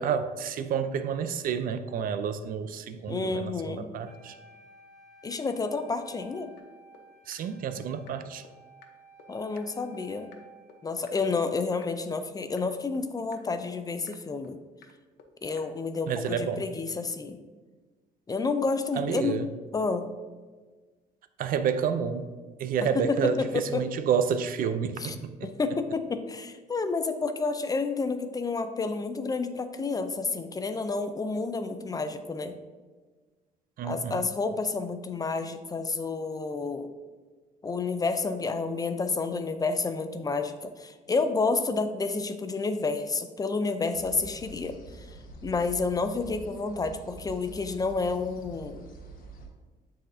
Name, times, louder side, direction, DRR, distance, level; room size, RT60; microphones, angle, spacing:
voice 1, 0.0-4.4 7.3-8.4 16.1-16.6 19.0-19.5 21.4-22.3 22.6-25.5 33.8-34.2, right 7 dB, 55° right, 11 dB, 0.5 m, -29 dB
voice 2, 3.1-3.9 5.2-6.5 9.3-10.3 10.8-14.6 15.4-17.4 18.3-19.4 19.7-20.1 22.9-23.8 25.0-25.2 25.4-32.6 33.8-36.9 37.6-45.1 45.4-48.8, left 4 dB, 20° left, 9 dB, 0.4 m, -30 dB
Wind instrument woodwind instrument, 4.0-11.0, right 3 dB, 40° left, 1.9 m, -54 dB
sound 1, 6.6-6.7 6.9-7.0 7.3-7.4 7.7-7.8 8.1-8.2 8.4-8.5 8.8-8.9 9.2-9.3 9.6-9.7 9.9-10.0 10.3-10.4 10.7-10.8 11.1-11.2 11.4-11.5 11.8-11.9 12.2-12.3 12.6-12.7 12.9-13.0 13.3-13.4 13.7-13.8 14.1-14.2 14.4-14.5 14.8-14.9 15.2-15.3 15.6-15.7 15.9-16.0 16.3-16.4, left 8 dB, 80° left, 0.7 m, -52 dB
sound 2, 43.9-49.5, right 3 dB, 55° left, 1.2 m, -46 dB
9.8 x 4.2 x 2.6 m, 1.4 s
cardioid pair, 110°, 17 cm